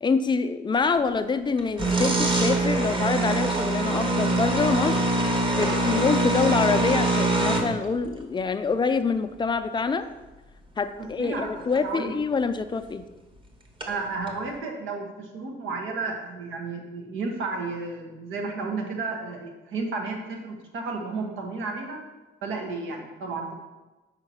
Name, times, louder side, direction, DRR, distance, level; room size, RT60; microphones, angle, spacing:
voice 1, 0.0-5.0 5.6-10.1 10.8-13.0, left 4 dB, 25° left, 9 dB, 0.4 m, -26 dB
sound 1, 1.6-7.8 11.3-11.4 11.7-11.8 13.8-13.9 14.3-14.4, right 2 dB, 25° right, 1.0 m, -24 dB
voice 2, 11.0-12.1 13.9-22.0 22.4-23.5, right 3 dB, 85° right, 2 dB, 1.3 m, -32 dB
5.7 x 4.5 x 5.5 m, 1.1 s
cardioid pair, 90°, 20 cm